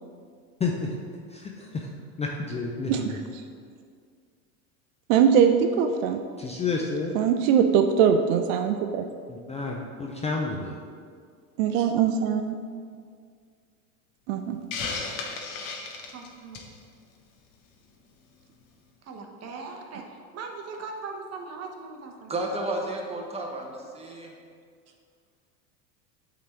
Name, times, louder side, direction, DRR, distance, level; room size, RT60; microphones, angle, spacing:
voice 1, 0.6-1.0 1.3-1.9 2.2-3.2 6.4-7.2 9.3-10.8, left 4 dB, 15° left, 0 dB, 0.5 m, -30 dB
voice 2, 5.1-6.2 7.1-9.1 11.6-12.6 14.3-14.6, right 7 dB, 65° right, 7 dB, 0.6 m, -21 dB
Hiss, 14.7-16.8, left 4 dB, 55° left, 1.1 m, -34 dB
voice 3, 16.1-16.6 19.0-22.5 24.9-25.0, right 4 dB, 35° right, 2 dB, 1.1 m, -40 dB
voice 4, 22.3-24.3, right 2 dB, 15° right, 0 dB, 1.1 m, -32 dB
8.3 x 3.9 x 4.4 m, 2.1 s
hypercardioid pair, 105°, 42 cm